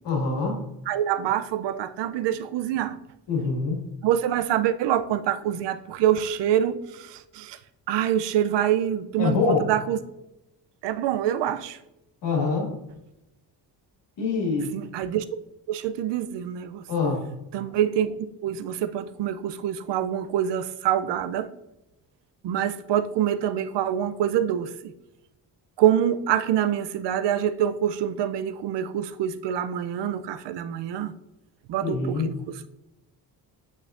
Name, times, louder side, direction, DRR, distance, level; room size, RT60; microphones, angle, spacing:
voice 1, 0.0-0.6 3.3-3.8 9.2-9.7 12.2-12.7 14.2-14.7 16.9-17.2 31.8-32.3, left 4 dB, 75° left, 2.1 m, -25 dB
voice 2, 0.9-3.0 4.0-7.6 7.9-10.0 10.8-11.8 14.7-15.2 15.7-16.8 17.5-18.1 18.4-21.5 22.4-24.9 25.8-31.1 31.7-32.6, right 10 dB, 75° right, 0.5 m, -25 dB
6.3 x 6.2 x 2.5 m
cardioid pair, 80°, 43 cm